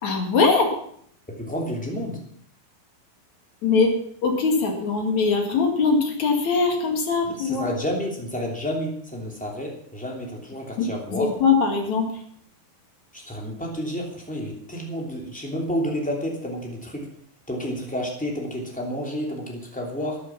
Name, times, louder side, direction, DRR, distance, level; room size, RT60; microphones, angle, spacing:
voice 1, 0.0-0.7 3.6-7.7 10.8-12.1, left 4 dB, 55° left, 3 dB, 3.2 m, -22 dB
voice 2, 1.3-2.2 7.2-11.3 13.1-17.1 17.5-20.2, equal, ahead, -1 dB, 2.3 m, -30 dB
13.5 x 10.0 x 5.9 m, 0.65 s
omnidirectional pair, 4.3 m